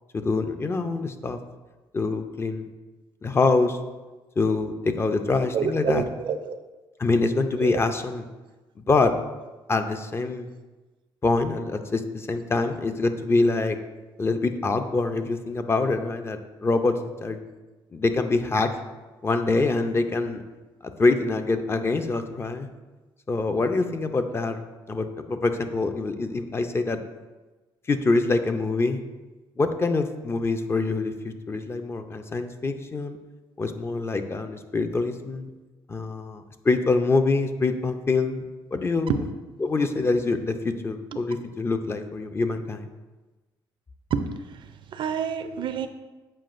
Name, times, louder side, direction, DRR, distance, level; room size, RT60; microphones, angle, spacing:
voice 1, 0.1-1.4 1.9-2.7 3.2-3.8 4.4-6.0 7.0-8.3 8.9-9.1 9.7-10.5 11.2-13.8 14.2-17.4 17.9-18.7 19.2-20.4 20.8-22.7 23.3-24.6 24.9-27.0 27.9-29.0 29.6-33.2 33.6-35.5 35.9-38.4 38.7-39.2 39.6-42.9, left 3 dB, 25° left, 7 dB, 0.5 m, -25 dB
voice 2, 5.5-6.6 7.6-7.8 39.1-39.2 44.1-44.3 44.9-45.9, right 7 dB, 60° right, 9 dB, 0.5 m, -27 dB
7.7 x 4.8 x 2.5 m, 1.2 s
cardioid pair, 95°, 9 cm